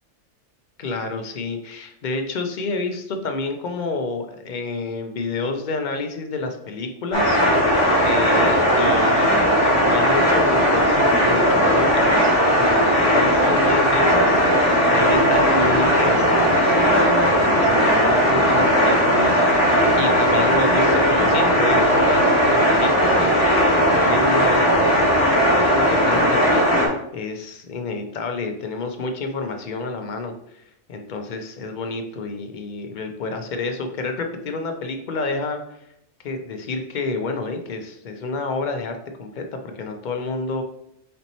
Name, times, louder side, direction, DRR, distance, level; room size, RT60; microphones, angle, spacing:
voice 1, 0.8-7.7 8.0-9.6 9.9-30.3 30.9-35.6 36.2-40.6, left 3 dB, 55° left, 5 dB, 0.6 m, -29 dB
sound 1, 7.1-26.9, equal, 25° left, 1.3 m, -17 dB
4.4 x 2.8 x 4.1 m, 0.74 s
omnidirectional pair, 1.3 m